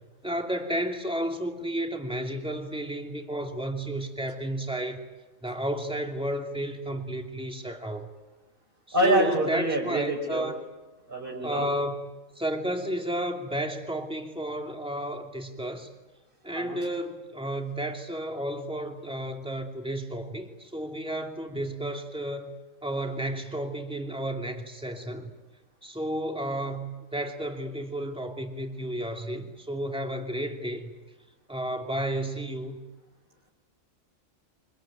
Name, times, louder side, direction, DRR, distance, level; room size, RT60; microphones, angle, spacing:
voice 1, 0.2-5.0 5.4-8.1 8.9-10.6 11.4-12.1 12.4-15.9 16.4-22.5 22.8-25.3 25.8-30.9 31.5-32.8, right 1 dB, 5° right, 2 dB, 2.8 m, -32 dB
voice 2, 8.9-10.5 11.1-11.7 16.5-16.8, right 1 dB, 45° right, -2 dB, 4.6 m, -26 dB
25.5 x 21.5 x 9.2 m, 1.1 s
omnidirectional pair, 1.3 m